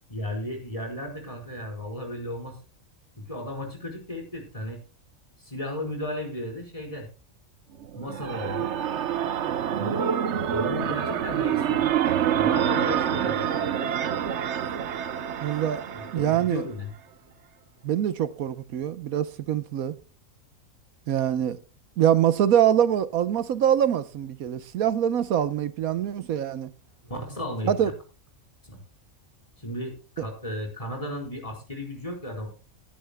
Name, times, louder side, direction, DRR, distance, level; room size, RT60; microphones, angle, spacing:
voice 1, 0.1-2.6 3.2-4.8 5.4-7.1 8.0-8.7 9.7-10.1 10.5-11.9 12.3-13.7 15.9-16.9 27.0-27.7 28.7-28.8 29.6-32.5, left 1 dB, 25° left, 4.6 m, -34 dB
sound 1, 7.8-16.6, right 9 dB, 60° right, 1.0 m, -27 dB
voice 2, 15.4-15.8 16.1-16.6 17.8-19.9 21.1-21.6 22.0-26.7 27.6-27.9, right 10 dB, 90° right, 1.4 m, -24 dB
19.0 x 10.0 x 2.2 m
omnidirectional pair, 1.4 m